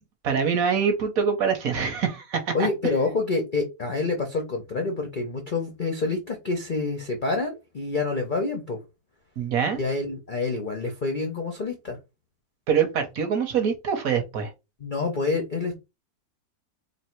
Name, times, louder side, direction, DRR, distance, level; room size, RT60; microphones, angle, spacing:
voice 1, 0.2-2.7 9.4-9.8 12.7-14.5, right 6 dB, 60° right, 1.1 m, -24 dB
voice 2, 2.5-8.8 9.8-12.0 14.8-15.7, left 3 dB, 65° left, 0.4 m, -27 dB
3.1 x 2.7 x 4.4 m
omnidirectional pair, 2.0 m